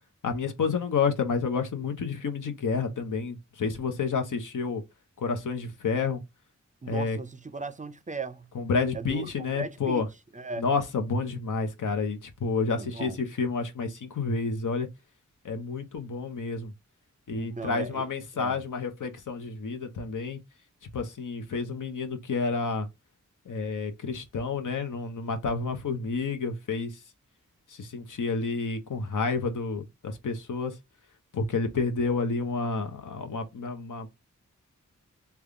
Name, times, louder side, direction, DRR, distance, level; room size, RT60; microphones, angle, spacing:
voice 1, 0.2-4.8 5.2-6.2 6.9-7.2 8.5-10.1 10.6-14.9 15.4-16.7 17.3-20.4 20.9-22.9 23.5-26.9 27.7-30.8 31.3-34.1, left 4 dB, 85° left, 0.8 m, -30 dB
voice 2, 6.8-8.5 8.9-10.0 10.3-10.7 12.6-13.2 17.3-18.0 18.3-18.6, right 4 dB, 25° right, 0.4 m, -37 dB
3.5 x 2.3 x 3.6 m
wide cardioid pair, 60°, 31 cm